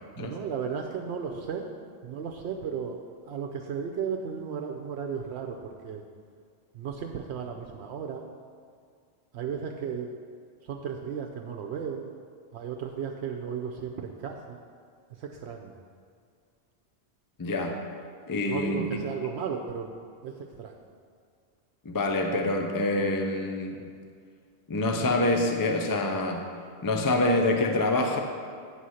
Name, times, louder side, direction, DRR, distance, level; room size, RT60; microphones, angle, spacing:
voice 1, 0.2-1.7 2.0-3.0 3.3-6.0 6.7-8.2 9.3-10.1 10.6-12.0 12.5-14.6 15.2-15.7 18.5-19.9 20.2-20.7, right 7 dB, 80° right, 2 dB, 0.9 m, -34 dB
voice 2, 17.4-17.8 18.3-18.8 21.9-23.8 24.7-26.4 26.8-28.2, left 2 dB, 25° left, 3 dB, 0.5 m, -26 dB
9.6 x 4.2 x 6.3 m, 2.1 s
omnidirectional pair, 1.1 m